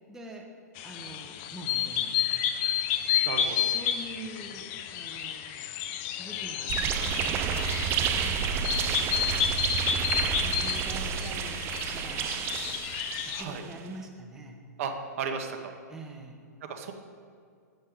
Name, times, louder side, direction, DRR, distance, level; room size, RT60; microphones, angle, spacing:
voice 1, 0.1-0.5 0.8-2.4 3.5-5.6 5.9-8.6 9.2-12.5 13.2-14.6 15.9-16.4, right 1 dB, 5° right, 0 dB, 0.8 m, -45 dB
sound 1, 0.8-13.4, left 9 dB, 40° left, 0.4 m, -31 dB
voice 2, 3.3-3.7 13.3-13.6 14.8-15.7 16.6-16.9, right 5 dB, 50° right, 5 dB, 0.8 m, -35 dB
sound 2, 6.2-12.2, left 1 dB, 70° left, 1.3 m, -51 dB
sound 3, 6.7-13.7, right 8 dB, 25° right, 0.4 m, -30 dB
8.4 x 6.4 x 3.5 m, 2.2 s
figure-of-eight pair, 110°, 9 cm